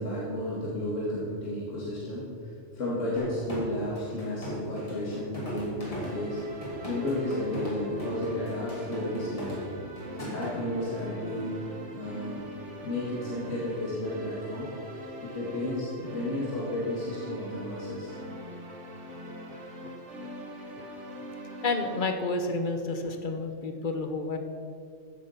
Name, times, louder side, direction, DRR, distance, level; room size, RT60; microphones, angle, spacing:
voice 1, 0.0-2.3 2.7-6.4 6.8-9.8 10.2-11.6 11.9-12.4 12.8-14.7 15.2-18.2, left 1 dB, 75° left, -7 dB, 2.6 m, -32 dB
sound 1, 3.2-10.5, equal, 30° left, 2.7 m, -39 dB
sound 2, 6.0-22.1, equal, 70° right, 1.6 m, -42 dB
voice 2, 19.5-19.9 20.2-20.3 20.8-20.9 21.4-24.4, left 3 dB, 45° left, 6 dB, 1.1 m, -31 dB
15.0 x 7.2 x 5.8 m, 2.4 s
omnidirectional pair, 1.3 m